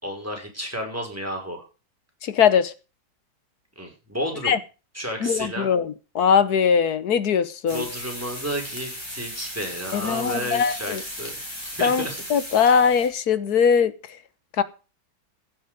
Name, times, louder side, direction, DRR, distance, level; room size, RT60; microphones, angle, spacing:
voice 1, 0.0-1.6 3.8-4.5 4.9-5.7 7.7-11.3 11.8-12.2, equal, 5° right, 5.3 m, -31 dB
voice 2, 2.2-2.7 4.4-4.6 5.2-7.8 9.9-11.0 11.8-12.0 12.3-13.9 14.6-14.7, left 7 dB, 60° left, 1.4 m, -20 dB
sound 1, 7.7-13.1, equal, 15° left, 5.9 m, -36 dB
16.0 x 8.2 x 5.1 m
omnidirectional pair, 2.0 m